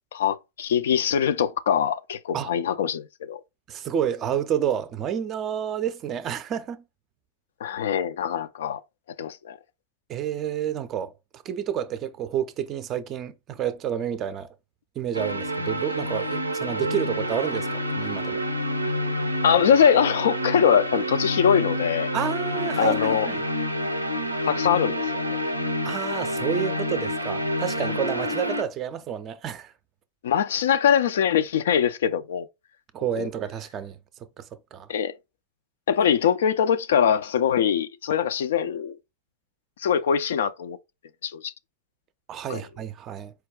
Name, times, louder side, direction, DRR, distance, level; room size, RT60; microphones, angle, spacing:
voice 1, 0.1-3.4 7.6-8.8 9.2-9.6 19.4-22.1 22.8-23.3 24.4-25.2 30.2-32.5 33.2-33.3 34.9-35.1 35.9-38.9 39.8-40.8 41.2-41.5 42.5-42.6, left 8 dB, 60° left, 0.3 m, -22 dB
voice 2, 3.7-6.8 10.1-14.5 15.0-18.4 22.1-23.4 25.8-29.7 32.9-34.0 34.4-34.5 34.7-34.9 42.3-43.3, right 9 dB, 30° right, 0.4 m, -29 dB
sound 1, 15.1-28.6, equal, 85° right, 0.4 m, -28 dB
4.5 x 2.2 x 3.5 m
figure-of-eight pair, 90°, 0 cm